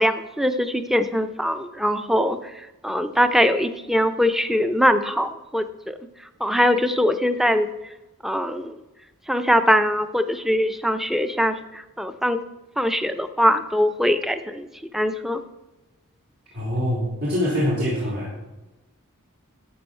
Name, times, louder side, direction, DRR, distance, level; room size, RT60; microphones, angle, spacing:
voice 1, 0.0-2.4 2.8-6.0 6.4-7.7 8.2-8.7 9.3-12.4 12.8-14.7 14.9-15.4, equal, ahead, 10 dB, 0.5 m, -22 dB
voice 2, 16.5-18.3, equal, 75° right, -9 dB, 3.6 m, -24 dB
12.5 x 7.6 x 4.4 m, 1.1 s
head